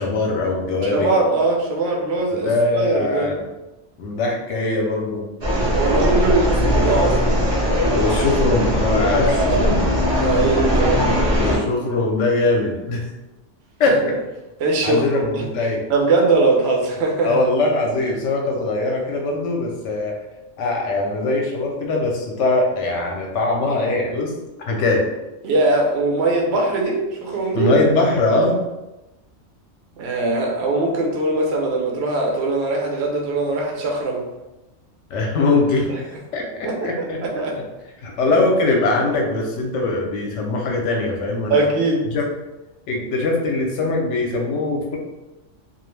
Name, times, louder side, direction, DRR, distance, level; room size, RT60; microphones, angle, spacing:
voice 1, 0.0-1.1 2.3-3.4 4.0-5.2 7.9-9.8 11.4-13.0 13.8-14.1 14.8-15.8 17.2-20.1 20.6-24.3 24.7-25.0 27.5-28.6 35.1-35.9 36.3-37.2 37.5-37.6 38.0-41.6 42.1-42.2 42.9-45.0, left 2 dB, 75° left, 0 dB, 0.9 m, -21 dB
voice 2, 0.8-3.3 5.7-7.2 10.1-11.2 14.0-14.1 14.6-15.4 15.9-17.4 25.4-27.7 30.0-34.3 36.6-37.6 41.5-42.1, right 2 dB, 65° right, 0 dB, 0.8 m, -21 dB
sound 1, 5.4-11.6, equal, 35° right, 0.4 m, -19 dB
2.3 x 2.0 x 3.1 m, 1.0 s
omnidirectional pair, 1.3 m